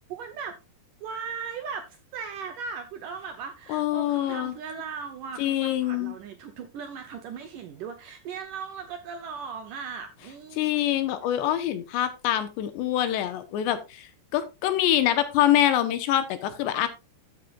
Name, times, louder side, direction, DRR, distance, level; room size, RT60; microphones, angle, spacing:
voice 1, 0.1-0.6 1.0-11.0, right 6 dB, 70° right, 2.0 m, -38 dB
voice 2, 3.7-4.5 5.4-6.1 10.6-16.9, left 12 dB, 90° left, 3.3 m, -25 dB
13.5 x 8.4 x 2.5 m
omnidirectional pair, 4.9 m